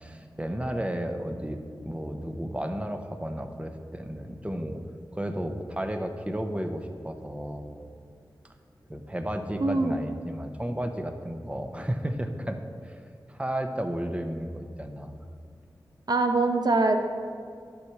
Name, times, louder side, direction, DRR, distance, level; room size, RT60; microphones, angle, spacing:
voice 1, 0.0-4.8 5.1-7.8 8.9-12.6 12.8-13.0 13.3-15.2, equal, 15° right, 6 dB, 0.9 m, -33 dB
voice 2, 9.6-9.9 16.1-17.0, right 3 dB, 55° right, 5 dB, 0.9 m, -23 dB
11.5 x 5.7 x 4.7 m, 2.3 s
cardioid pair, 45°, 8 cm